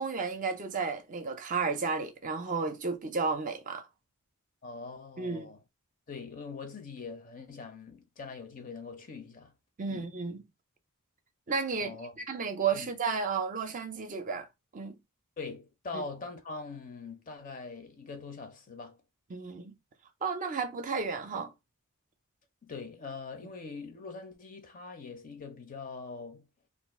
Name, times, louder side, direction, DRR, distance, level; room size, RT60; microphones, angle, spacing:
voice 1, 0.0-3.9 5.2-5.5 9.8-10.4 11.5-14.5 14.7-15.0 15.9-16.0 19.3-19.7 20.2-21.5, right 5 dB, 35° right, 0.5 m, -33 dB
voice 2, 4.6-5.6 6.1-9.5 9.9-10.1 11.8-12.1 12.7-12.9 15.4-19.0 22.6-26.4, left 4 dB, 40° left, 0.6 m, -43 dB
2.5 x 2.4 x 3.4 m
head